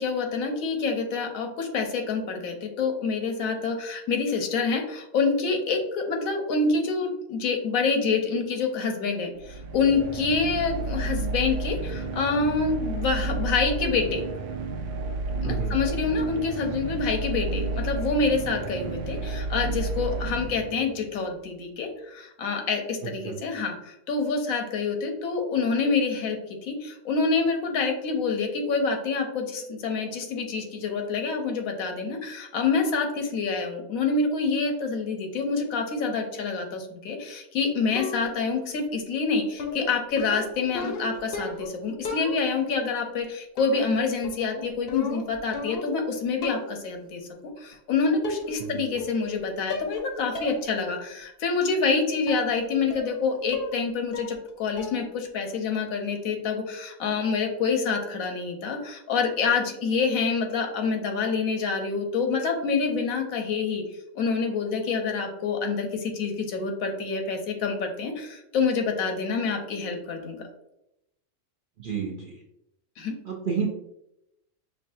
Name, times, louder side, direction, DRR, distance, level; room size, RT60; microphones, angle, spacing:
voice 1, 0.0-14.2 15.4-47.2 47.6-63.8 64.2-70.4 73.0-73.1, left 4 dB, 85° left, 4 dB, 1.2 m, -27 dB
sound 1, 9.4-21.2, right 3 dB, 80° right, 1.0 m, -31 dB
voice 2, 15.4-15.7 23.2-23.3 48.6-48.8 71.8-72.3 73.2-73.7, right 6 dB, 55° right, -2 dB, 0.6 m, -30 dB
sound 2, 38.0-38.5 39.6-41.7 42.0-42.7 43.6-44.0 44.2-46.0 46.4-46.8 47.7-47.8 48.2-48.7 49.0-49.4 49.7-50.0 50.3-50.6 51.0-51.1 52.3-52.5 52.9-53.2 53.5-53.8 54.1-54.5 54.8-55.1, left 3 dB, 55° left, 0.7 m, -35 dB
5.6 x 2.3 x 2.6 m, 0.83 s
omnidirectional pair, 1.4 m